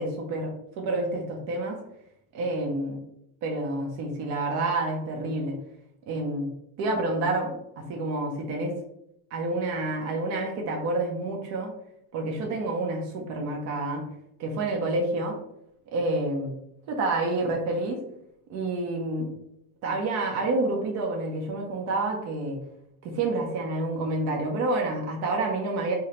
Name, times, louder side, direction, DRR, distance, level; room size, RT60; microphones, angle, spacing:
voice 1, 0.0-1.8 2.3-3.0 3.4-5.6 6.1-6.5 6.8-8.8 9.3-11.7 12.1-14.0 14.4-15.4 15.9-16.5 16.9-18.0 18.5-19.3 19.8-22.6 23.0-25.9, right 2 dB, 40° right, 1 dB, 0.7 m, -28 dB
3.5 x 2.1 x 2.8 m, 0.78 s
supercardioid pair, 125°, 43 cm